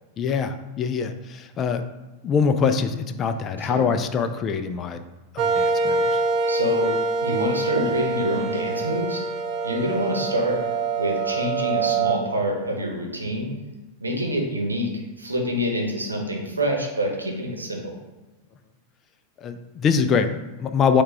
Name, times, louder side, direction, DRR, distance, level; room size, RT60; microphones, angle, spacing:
voice 1, 0.2-1.8 2.2-5.0 5.3-6.2 19.4-21.0, left 6 dB, 30° left, 9 dB, 0.3 m, -24 dB
sound 1, 5.4-12.2, right 3 dB, 40° right, 0.5 m, -25 dB
voice 2, 6.5-6.9 7.2-9.2 9.6-10.6 11.0-13.5 14.0-18.0, equal, 80° right, 1 dB, 0.8 m, -26 dB
4.6 x 2.3 x 4.5 m, 1.1 s
figure-of-eight pair, 90°, 0 cm